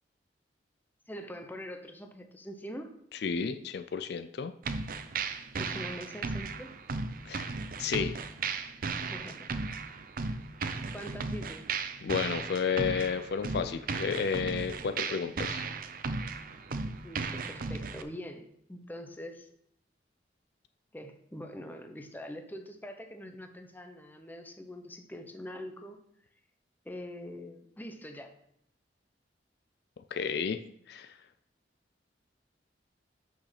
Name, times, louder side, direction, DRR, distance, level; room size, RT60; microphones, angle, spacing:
voice 1, 1.1-2.9 5.5-6.7 9.1-9.5 10.3-10.4 10.9-11.6 17.0-19.5 20.9-26.0 26.8-28.4, equal, 10° left, 5 dB, 0.8 m, -43 dB
voice 2, 3.1-4.5 7.3-8.2 12.0-15.6 30.1-30.6 30.9-31.2, left 6 dB, 60° left, 10 dB, 0.4 m, -32 dB
sound 1, 4.6-18.0, right 4 dB, 50° right, 0.6 m, -36 dB
6.3 x 5.9 x 5.8 m, 0.72 s
head